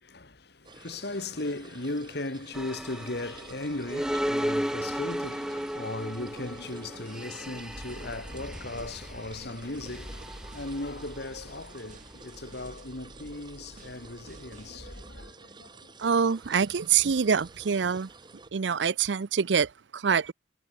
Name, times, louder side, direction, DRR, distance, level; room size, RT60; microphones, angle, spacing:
voice 1, 0.0-15.9, left 2 dB, 60° left, 2.2 m, -37 dB
sound 1, 0.6-18.5, right 3 dB, 25° right, 1.1 m, -51 dB
sound 2, 2.5-15.3, equal, 5° right, 0.9 m, -36 dB
sound 3, 6.8-14.8, right 4 dB, 45° right, 7.3 m, -59 dB
voice 2, 16.0-18.1 18.5-20.3, right 6 dB, 75° right, 0.6 m, -25 dB
head